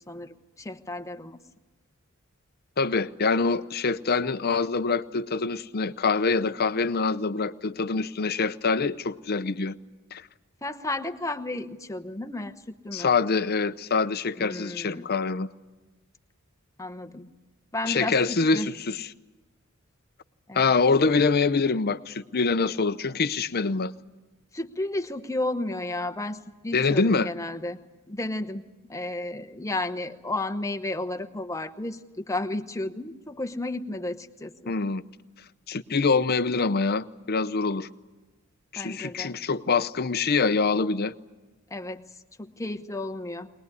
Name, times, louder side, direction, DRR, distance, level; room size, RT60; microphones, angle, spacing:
voice 1, 0.1-1.4 10.6-12.5 12.8-13.1 14.4-15.1 16.8-17.3 17.7-18.7 20.5-20.6 24.5-27.8 28.1-28.6 28.9-34.7 38.8-39.3 41.7-42.0 42.4-43.5, left 2 dB, 15° left, 1.0 m, -33 dB
voice 2, 2.8-9.7 10.1-10.3 12.9-15.5 17.9-19.1 20.5-23.9 26.7-27.3 34.7-35.0 35.7-37.9 38.7-41.1, left 4 dB, 45° left, 0.7 m, -25 dB
22.5 x 20.0 x 9.6 m
head